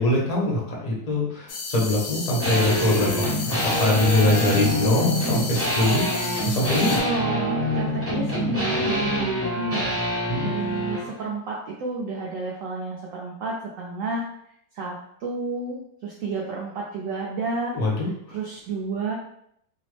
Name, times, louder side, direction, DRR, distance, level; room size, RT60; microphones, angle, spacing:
voice 1, 0.0-3.3 3.8-6.0 6.4-7.0 10.3-10.5 17.7-18.1, left 2 dB, 45° left, -4 dB, 0.5 m, -22 dB
sound 1, 1.5-7.0, left 4 dB, 80° left, 1.2 m, -33 dB
sound 2, 2.4-11.1, equal, 15° right, 0.6 m, -26 dB
voice 2, 6.9-14.3 14.7-15.0 15.2-17.7 18.3-19.1, right 3 dB, 70° right, -3 dB, 0.8 m, -31 dB
2.8 x 2.0 x 3.1 m, 0.70 s
omnidirectional pair, 1.8 m